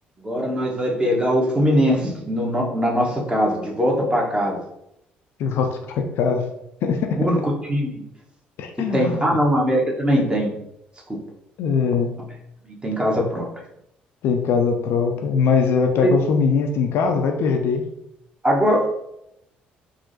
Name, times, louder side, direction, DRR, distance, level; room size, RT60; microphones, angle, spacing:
voice 1, 0.2-4.6 7.2-8.0 8.9-10.5 12.7-13.5 16.0-16.1 18.4-18.9, equal, 20° right, -2 dB, 1.0 m, -21 dB
voice 2, 5.4-6.4 6.8-7.2 8.6-9.2 11.6-12.1 14.2-17.8, left 5 dB, 55° left, 4 dB, 0.4 m, -21 dB
3.6 x 2.7 x 2.7 m, 0.80 s
figure-of-eight pair, 50°, 5 cm